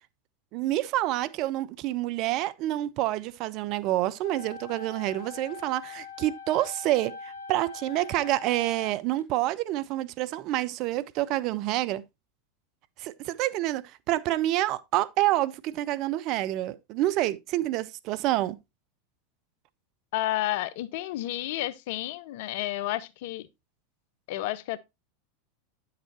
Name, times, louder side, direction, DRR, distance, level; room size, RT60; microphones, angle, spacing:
voice 1, 0.5-12.0 13.0-18.6, right 15 dB, 50° right, 0.5 m, -28 dB
sound 1, 4.2-9.2, left 7 dB, 85° left, 1.2 m, -43 dB
voice 2, 20.1-23.5 24.3-24.8, left 15 dB, 65° left, 0.5 m, -31 dB
8.9 x 6.7 x 2.7 m
hypercardioid pair, 95°, 0 cm